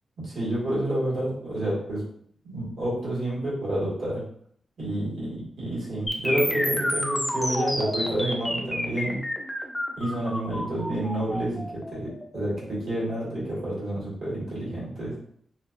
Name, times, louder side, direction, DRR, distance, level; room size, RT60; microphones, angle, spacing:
voice 1, 0.2-2.0 2.4-4.2 4.8-9.2 10.0-15.2, right 1 dB, 75° right, -7 dB, 1.3 m, -29 dB
sound 1, 6.1-14.0, left 1 dB, 10° left, 0.4 m, -30 dB
2.4 x 2.2 x 2.4 m, 0.64 s
wide cardioid pair, 110°, 0 cm